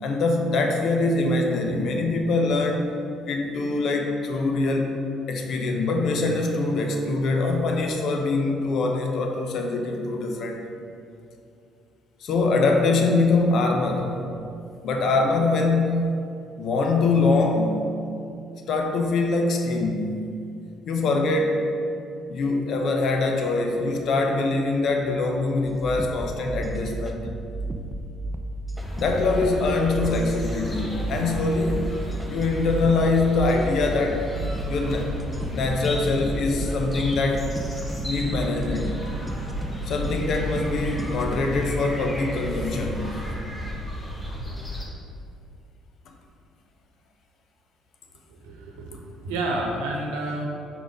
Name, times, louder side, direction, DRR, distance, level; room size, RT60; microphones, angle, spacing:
voice 1, 0.0-2.9 3.3-5.0 5.3-10.7 12.2-14.2 14.8-16.2 16.6-17.8 18.7-20.3 20.9-21.7 22.3-27.3 29.0-31.9 32.3-34.3 34.7-35.2 35.5-37.5 38.0-39.0 39.9-43.2, left 3 dB, 60° left, 2 dB, 0.8 m, -23 dB
sound 1, 25.7-41.6, right 1 dB, 10° right, 0.6 m, -33 dB
sound 2, 28.8-44.9, equal, 20° left, 1.3 m, -34 dB
voice 2, 48.4-50.5, right 2 dB, 85° right, 0 dB, 0.9 m, -30 dB
4.8 x 4.0 x 5.1 m, 2.5 s
hypercardioid pair, 60°, 0 cm